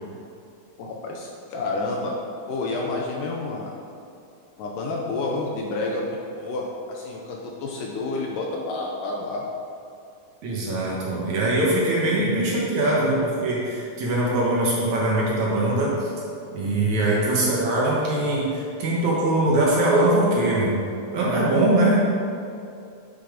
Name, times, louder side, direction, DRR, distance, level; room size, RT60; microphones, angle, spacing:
voice 1, 0.8-2.2 2.5-3.7 4.6-9.5 17.1-17.4, left 2 dB, 75° left, -1 dB, 2.1 m, -29 dB
voice 2, 10.4-16.1 16.5-20.7 21.1-22.0, right 1 dB, 60° right, -5 dB, 2.4 m, -22 dB
9.9 x 5.6 x 5.1 m, 2.5 s
omnidirectional pair, 4.3 m